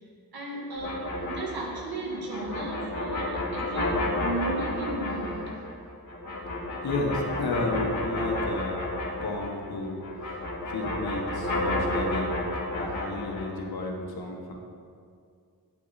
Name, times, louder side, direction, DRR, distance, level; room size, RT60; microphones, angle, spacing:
voice 1, 0.3-5.5 9.0-9.3, right 2 dB, 80° right, -2 dB, 2.1 m, -35 dB
sound 1, 0.8-9.7 10.0-13.6, left 1 dB, 60° left, 1.9 m, -31 dB
voice 2, 6.8-8.9 9.2-10.4 10.7-12.4 12.7-14.5, left 2 dB, 85° left, 0 dB, 1.5 m, -32 dB
9.2 x 8.6 x 4.2 m, 2.2 s
wide cardioid pair, 135°, 36 cm